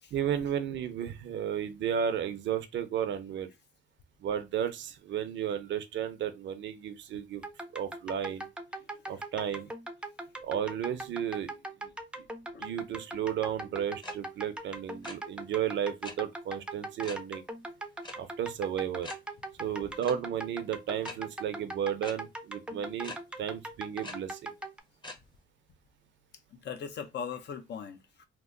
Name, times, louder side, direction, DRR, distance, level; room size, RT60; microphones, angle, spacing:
voice 1, 0.1-3.5 4.2-7.4 7.7-8.5 9.1-9.7 10.4-11.5 11.8-11.9 12.6-17.5 18.2-19.1 19.6-24.5, right 9 dB, 65° right, 0.6 m, -33 dB
sound 1, 7.4-24.8, right 2 dB, 5° right, 0.5 m, -41 dB
voice 2, 8.8-9.2 12.5-12.7 19.9-20.0 26.5-28.3, left 7 dB, 60° left, 0.7 m, -41 dB
sound 2, 14.0-14.1 14.4-14.6 14.9-15.1 16.0-16.1 17.0-17.2 18.0-18.1 18.5-18.6 19.0-19.1 20.0-20.1 21.0-21.1 22.0-22.1 23.0-23.2 24.0-24.1 25.0-25.2, left 3 dB, 25° left, 0.8 m, -42 dB
3.0 x 2.1 x 3.6 m
cardioid pair, 90°, 20 cm